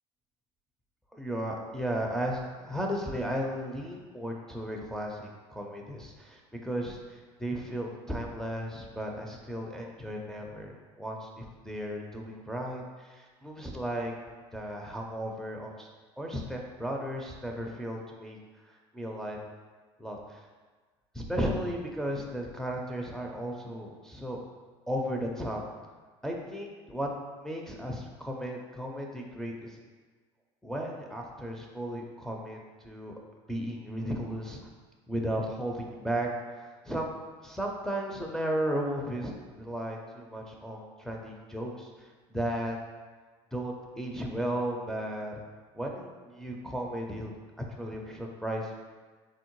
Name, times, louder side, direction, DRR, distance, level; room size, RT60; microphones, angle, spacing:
voice 1, 1.1-14.1 14.5-15.9 16.2-18.4 18.6-19.4 20.0-20.5 21.1-24.4 24.9-25.6 26.2-27.1 27.3-29.8 30.6-33.1 33.5-34.6 35.1-36.3 36.6-37.1 37.4-39.3 39.6-42.8 43.5-45.3 45.7-48.8, equal, 5° left, -1 dB, 0.4 m, -35 dB
3.6 x 2.0 x 3.0 m, 1.4 s
hypercardioid pair, 80°, 16 cm